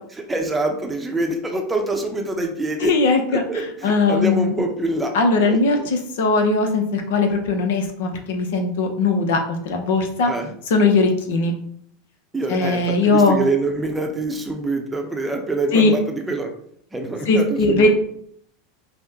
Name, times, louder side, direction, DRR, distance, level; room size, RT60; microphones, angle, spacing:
voice 1, 0.3-2.9 3.5-5.1 5.4-5.9 10.2-10.5 12.3-16.5 16.9-17.9, right 2 dB, 15° right, 3 dB, 0.7 m, -25 dB
voice 2, 2.8-4.5 5.1-9.4 9.6-10.3 10.7-11.5 12.5-13.4 15.7-15.9 17.3-17.9, left 3 dB, 70° left, 4 dB, 0.7 m, -19 dB
5.5 x 2.1 x 2.7 m, 0.67 s
hypercardioid pair, 90°, 0 cm